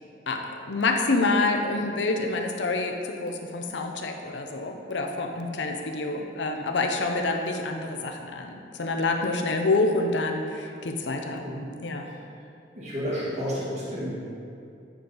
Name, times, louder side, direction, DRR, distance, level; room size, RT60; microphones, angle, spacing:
voice 1, 0.3-11.5 11.8-12.1, left 3 dB, 75° left, 4 dB, 0.6 m, -27 dB
voice 2, 12.7-14.3, equal, 40° right, -9 dB, 1.4 m, -31 dB
9.3 x 3.9 x 4.0 m, 2.5 s
head